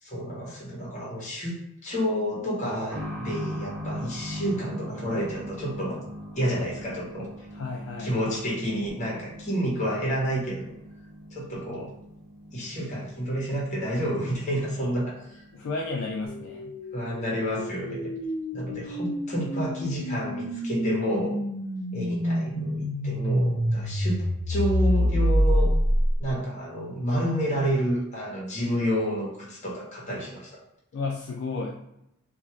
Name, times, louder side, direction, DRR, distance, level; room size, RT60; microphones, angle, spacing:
voice 1, 0.0-6.0 6.3-7.3 8.0-10.7 11.3-11.9 12.5-15.4 16.9-18.1 18.5-21.4 21.9-25.7 26.2-30.5, equal, 35° left, -5 dB, 1.1 m, -29 dB
sound 1, 2.9-17.3 17.6-17.7 18.7-18.8, equal, 5° right, 1.2 m, -41 dB
voice 2, 7.5-8.2 15.5-16.8 30.9-31.8, left 3 dB, 60° left, 0 dB, 0.3 m, -32 dB
sound 2, 16.3-26.3, equal, 90° left, 0.9 m, -27 dB
2.5 x 2.4 x 3.0 m, 0.85 s
head